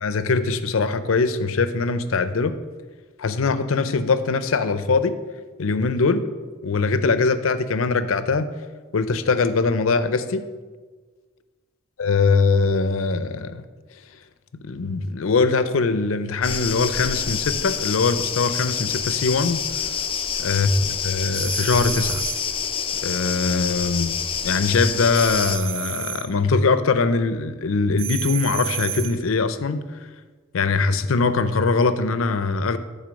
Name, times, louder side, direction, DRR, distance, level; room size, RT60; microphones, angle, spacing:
voice 1, 0.0-2.5 3.2-5.1 5.6-6.2 6.6-8.5 8.9-10.4 12.0-13.6 14.5-19.6 20.4-20.7 21.0-22.3 23.0-24.2 24.4-29.8 30.5-32.8, left 4 dB, 80° left, 12 dB, 0.5 m, -22 dB
sound 1, 16.4-25.6, left 7 dB, 25° left, 0.3 m, -27 dB
sound 2, 21.3-22.5 25.1-26.3 28.0-29.2, right 10 dB, 70° right, 0.5 m, -31 dB
10.5 x 4.1 x 5.2 m, 1.4 s
head